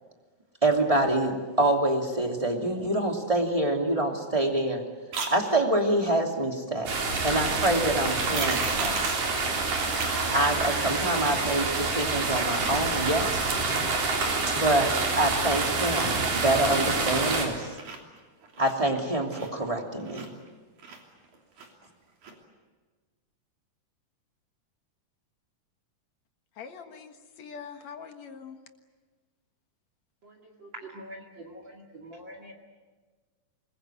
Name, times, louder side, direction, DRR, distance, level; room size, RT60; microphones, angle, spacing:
voice 1, 0.6-4.8 5.3-6.9 7.2-9.0 10.3-13.3 14.5-17.6 18.6-20.3, right 1 dB, 10° right, 2 dB, 2.4 m, -26 dB
sound 1, 5.1-5.3 8.0-9.3 10.0-10.1 10.5-10.6 11.0-11.5 11.8-12.4 12.9-13.3 13.6-14.1 14.5-15.1 15.4-17.4 17.7-20.5 20.8-21.9 22.2-22.3, right 4 dB, 65° right, 4.6 m, -38 dB
sound 2, 6.9-17.5, right 3 dB, 85° right, 5.4 m, -27 dB
voice 2, 26.6-28.6, left 6 dB, 60° left, 6 dB, 2.6 m, -43 dB
voice 3, 30.2-32.5, right 1 dB, 40° right, 2 dB, 2.7 m, -45 dB
26.5 x 21.0 x 9.3 m, 1.4 s
omnidirectional pair, 3.7 m